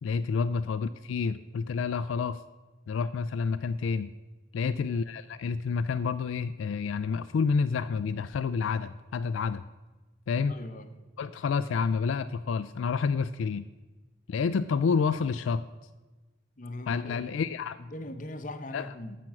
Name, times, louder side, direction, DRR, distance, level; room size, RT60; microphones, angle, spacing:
voice 1, 0.0-2.4 2.9-4.1 4.5-9.7 10.3-10.5 11.2-13.6 14.3-15.6 16.9-17.8 18.7-18.8, left 5 dB, 80° left, 12 dB, 0.3 m, -29 dB
voice 2, 10.5-10.9 16.6-17.3 17.8-19.2, left 1 dB, 40° left, 8 dB, 0.8 m, -40 dB
13.5 x 6.0 x 5.9 m, 1.2 s
head